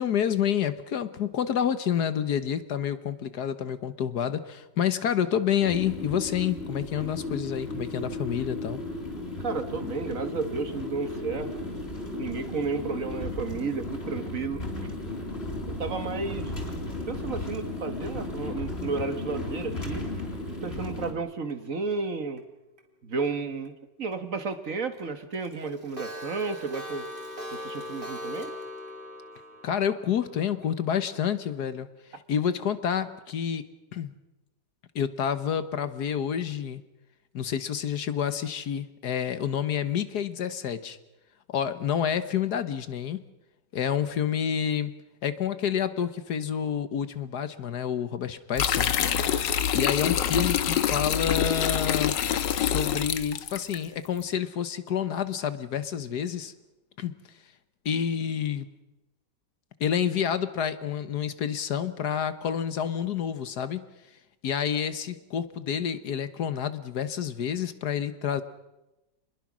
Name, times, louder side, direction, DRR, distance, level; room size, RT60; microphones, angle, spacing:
voice 1, 0.0-8.8 29.6-33.6 33.9-34.1 34.9-36.8 37.3-41.0 41.5-43.2 43.7-44.9 45.2-48.9 49.7-52.1 52.6-56.5 57.0-57.1 57.8-58.7 59.8-63.8 64.4-68.4, left 8 dB, 65° left, 12 dB, 1.6 m, -28 dB
sound 1, 5.6-21.1, left 2 dB, 35° left, 4.3 m, -35 dB
voice 2, 9.4-11.5 12.2-14.6 15.7-16.5 17.1-20.0 20.6-22.4 23.0-27.0 27.5-28.5, right 4 dB, 50° right, 9 dB, 1.7 m, -32 dB
Clock, 18.9-21.9 22.4-22.5 22.8-22.9 23.2-23.3 23.6-23.7 24.1-24.2 24.5-24.6 24.9-25.0 25.3-31.2, left 1 dB, 30° right, 3.4 m, -42 dB
sound 2, 48.6-53.8, left 9 dB, 85° left, 1.7 m, -26 dB
28.0 x 21.5 x 6.2 m, 0.99 s
omnidirectional pair, 1.9 m